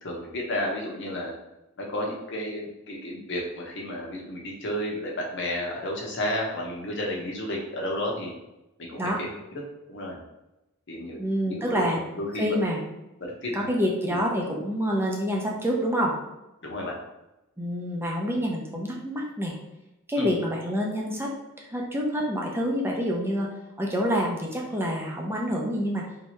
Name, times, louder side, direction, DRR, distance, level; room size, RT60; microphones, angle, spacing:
voice 1, 0.0-1.3 1.8-8.3 8.8-9.4 9.9-10.2 10.9-11.8 12.1-12.6 13.2-13.7 14.1-14.2 16.6-16.9 20.2-20.4, left 1 dB, 55° left, -1 dB, 1.0 m, -32 dB
voice 2, 11.2-12.0 12.3-12.8 13.5-16.1 17.6-19.5 20.1-23.5 23.8-26.0, equal, 10° right, -2 dB, 0.7 m, -27 dB
3.4 x 2.9 x 4.4 m, 0.95 s
head